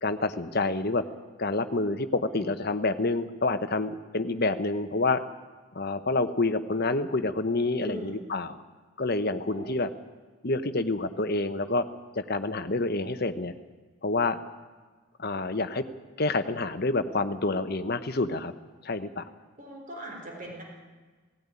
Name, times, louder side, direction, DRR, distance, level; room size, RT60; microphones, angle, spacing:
voice 1, 0.0-1.0 1.4-5.2 5.7-8.6 9.0-9.9 10.4-11.8 12.2-13.5 14.0-14.4 15.2-15.8 16.2-18.5 18.8-19.2, left 2 dB, 45° left, 9 dB, 1.1 m, -28 dB
voice 2, 7.8-8.2 9.5-9.7 19.6-20.6, equal, 40° right, 0 dB, 3.7 m, -40 dB
17.5 x 16.5 x 9.8 m, 1.4 s
head